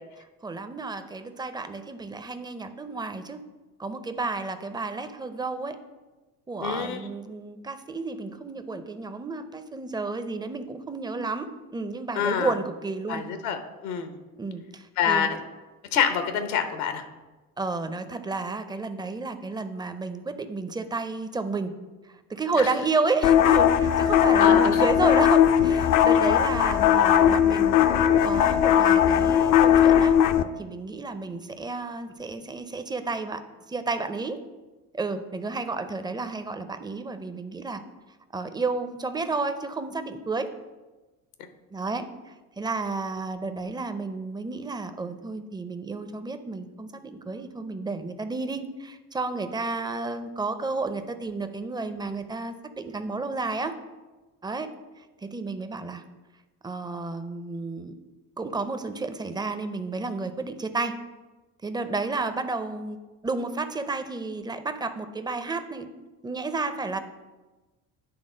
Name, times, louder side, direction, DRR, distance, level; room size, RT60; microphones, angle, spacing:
voice 1, 0.4-3.4 3.8-5.8 6.5-11.5 11.7-13.2 14.4-15.3 17.6-21.7 22.3-30.1 30.6-33.4 33.7-34.4 34.9-37.8 38.3-40.5 41.7-42.1 42.6-53.7 54.4-54.7 55.2-56.0 56.6-57.9 58.4-60.9 61.6-63.0 63.2-65.9 66.2-67.0, right 3 dB, 10° right, 9 dB, 0.5 m, -31 dB
voice 2, 6.6-7.0 12.1-12.6 13.1-14.1 15.0-15.4 15.9-17.0 22.5-22.7 24.4-24.8 26.1-26.2, left 7 dB, 70° left, 8 dB, 1.0 m, -26 dB
sound 1, 23.2-30.4, left 9 dB, 45° left, 0.5 m, -19 dB
9.7 x 3.6 x 5.0 m, 1.2 s
hypercardioid pair, 65°, 47 cm